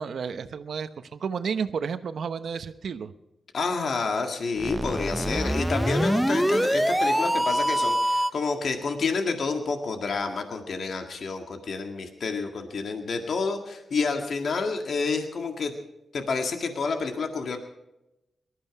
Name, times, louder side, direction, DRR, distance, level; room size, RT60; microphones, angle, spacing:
voice 1, 0.0-3.1, right 6 dB, 75° right, 11 dB, 0.9 m, -31 dB
voice 2, 3.5-15.7 16.1-17.6, left 4 dB, 65° left, 5 dB, 1.9 m, -29 dB
sound 1, 4.6-8.5, equal, 5° right, 0.5 m, -24 dB
19.0 x 13.0 x 4.8 m, 0.90 s
cardioid pair, 60°, 0 cm